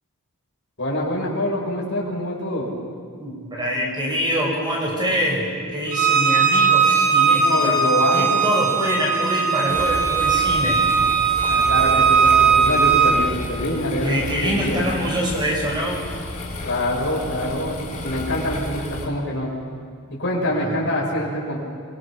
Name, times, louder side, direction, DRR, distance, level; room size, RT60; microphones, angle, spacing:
voice 1, 0.8-2.7 7.4-8.4 11.5-14.1 14.4-14.8 16.6-19.5 20.2-21.6, left 1 dB, 55° left, -4 dB, 6.1 m, -25 dB
voice 2, 3.2-7.8 8.1-10.9 14.0-16.1 20.5-20.8, equal, 20° right, -1 dB, 5.7 m, -25 dB
Bowed string instrument, 5.9-13.1, right 6 dB, 70° right, 3.5 m, -18 dB
sound 1, 9.7-19.1, left 1 dB, 35° left, 3.3 m, -32 dB
27.0 x 24.0 x 6.1 m, 2.1 s
head